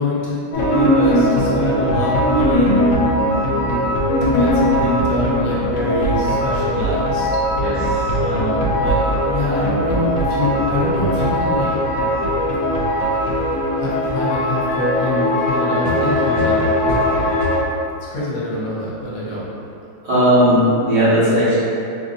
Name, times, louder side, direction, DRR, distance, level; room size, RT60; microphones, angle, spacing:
voice 1, 0.0-2.7 4.2-7.3 8.2-11.7 13.2-13.3 13.8-16.6 18.1-19.5, left 1 dB, 60° left, -7 dB, 1.0 m, -25 dB
sound 1, 0.5-17.6, equal, 85° left, 1.4 m, -19 dB
voice 2, 20.0-21.6, equal, 70° right, -13 dB, 2.0 m, -16 dB
4.1 x 2.6 x 2.6 m, 2.6 s
omnidirectional pair, 2.0 m